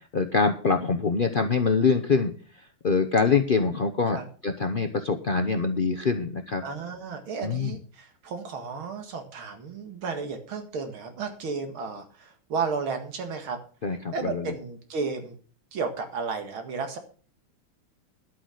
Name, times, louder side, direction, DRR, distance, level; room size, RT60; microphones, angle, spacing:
voice 1, 0.1-2.3 2.8-6.6 7.4-7.7 13.8-14.5, left 4 dB, 85° left, 5 dB, 0.4 m, -24 dB
voice 2, 6.6-13.6 14.1-15.4 15.7-17.0, right 5 dB, 75° right, 6 dB, 2.7 m, -33 dB
11.0 x 8.5 x 6.4 m, 0.40 s
omnidirectional pair, 2.3 m